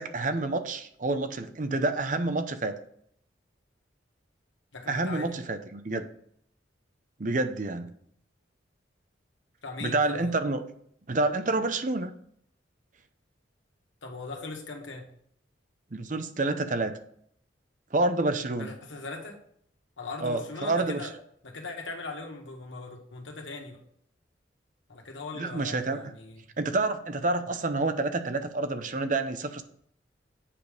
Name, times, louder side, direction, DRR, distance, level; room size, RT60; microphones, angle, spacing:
voice 1, 0.0-2.7 4.9-6.1 7.2-7.9 9.8-10.6 11.1-12.1 15.9-16.9 17.9-18.7 20.2-21.1 25.4-26.1 26.6-29.6, right 2 dB, 45° right, 9 dB, 0.7 m, -28 dB
voice 2, 4.7-5.4 9.6-10.3 14.0-15.1 18.6-19.4 20.0-21.1 21.4-23.8 24.9-26.4 27.4-27.6, left 3 dB, 90° left, 2 dB, 1.7 m, -40 dB
8.5 x 5.1 x 5.2 m, 0.67 s
head